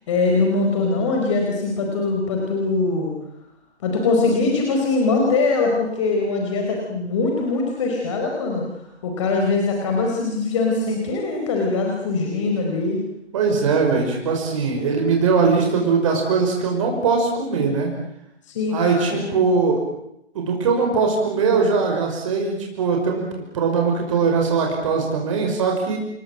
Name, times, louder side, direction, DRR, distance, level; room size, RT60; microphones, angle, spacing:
voice 1, 0.1-3.1 3.8-8.6 9.0-13.0 18.5-19.2, left 3 dB, 25° left, 1 dB, 4.6 m, -22 dB
voice 2, 13.3-17.9 18.7-19.8 20.3-26.0, right 5 dB, 30° right, 1 dB, 5.7 m, -21 dB
29.0 x 22.0 x 7.7 m, 0.79 s
figure-of-eight pair, 150°, 34 cm